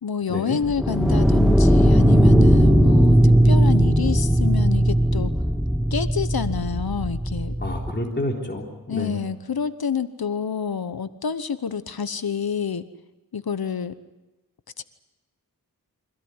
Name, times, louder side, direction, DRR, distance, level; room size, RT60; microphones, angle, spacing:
voice 1, 0.0-5.3 5.9-7.6 8.9-12.8 13.3-13.9 14.8-14.9, left 6 dB, 75° left, 12 dB, 1.1 m, -28 dB
sound 1, 0.6-7.9, equal, ahead, 1.6 m, -18 dB
voice 2, 7.6-9.2, left 1 dB, 30° left, 0 dB, 3.7 m, -29 dB
25.0 x 17.0 x 9.7 m, 1.1 s
wide cardioid pair, 60°, 37 cm